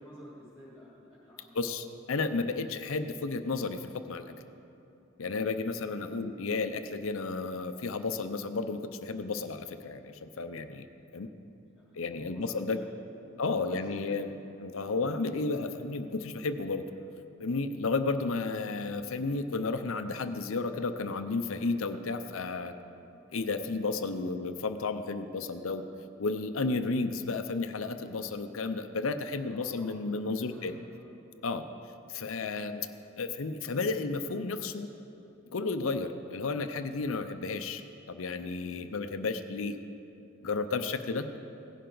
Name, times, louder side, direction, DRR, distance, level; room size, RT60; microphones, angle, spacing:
voice 1, 0.0-1.6 11.7-13.0 13.2-14.2 14.5-14.6 15.5-15.7 15.9-16.1 16.9-17.1 17.7-17.8 29.4-31.1, equal, 5° left, -7 dB, 2.1 m, -52 dB
voice 2, 1.5-4.3 5.2-10.9 11.1-11.3 11.9-12.8 13.4-14.3 14.6-16.8 17.4-22.7 23.3-25.8 26.2-30.8 31.4-31.6 32.1-32.8 33.2-34.9 35.5-37.8 38.1-39.8 40.4-41.3, left 3 dB, 75° left, 9 dB, 0.6 m, -32 dB
17.5 x 11.0 x 3.9 m, 2.8 s
head